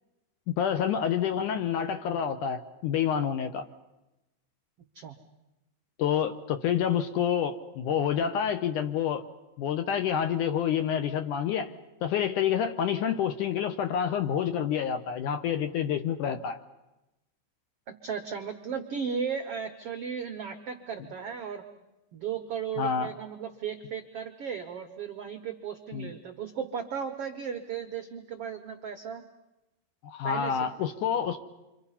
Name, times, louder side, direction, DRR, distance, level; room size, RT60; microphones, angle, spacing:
voice 1, 0.5-3.6 6.0-9.3 9.6-11.7 12.0-16.6 22.8-23.1 25.9-26.1 30.0-31.4, left 8 dB, 70° left, 8 dB, 2.1 m, -28 dB
voice 2, 18.0-21.6 22.1-29.2 30.2-30.7, right 7 dB, 85° right, 5 dB, 1.3 m, -35 dB
28.5 x 25.5 x 5.7 m, 0.98 s
omnidirectional pair, 4.5 m